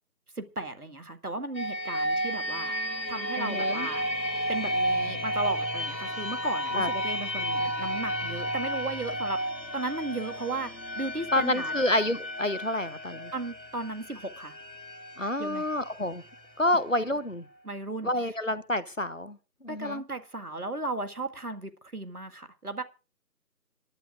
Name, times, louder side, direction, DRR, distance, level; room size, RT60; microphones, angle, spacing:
voice 1, 0.4-2.8 3.1-4.1 4.5-9.4 9.7-10.7 11.0-11.7 13.3-14.6 15.4-15.7 17.6-18.1 19.7-22.8, right 2 dB, 60° right, 8 dB, 1.9 m, -35 dB
sound 1, 1.5-17.2, equal, 85° left, 2.1 m, -32 dB
voice 2, 3.4-3.9 6.7-6.9 11.3-13.3 15.2-16.2 16.6-17.5 18.0-20.0, left 1 dB, 50° left, 16 dB, 0.9 m, -28 dB
26.5 x 11.0 x 2.5 m, 0.34 s
figure-of-eight pair, 175°, 50 cm